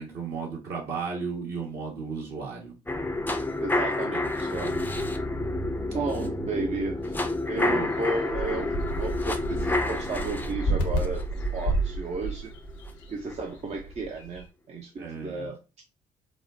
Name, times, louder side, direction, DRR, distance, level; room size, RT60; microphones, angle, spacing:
voice 1, 0.0-2.8 5.2-5.5 7.5-7.9 15.0-15.5, right 5 dB, 60° right, 1.5 m, -35 dB
sound 1, 2.9-12.9 13.3-13.4, left 2 dB, 10° left, 0.5 m, -30 dB
voice 2, 3.6-4.8 5.9-7.2 7.4-12.5 13.1-15.6, right 3 dB, 35° right, 0.6 m, -33 dB
sound 2, 7.7-14.5, right 1 dB, 70° left, 0.7 m, -32 dB
4.7 x 2.1 x 2.5 m
hypercardioid pair, 50°, 19 cm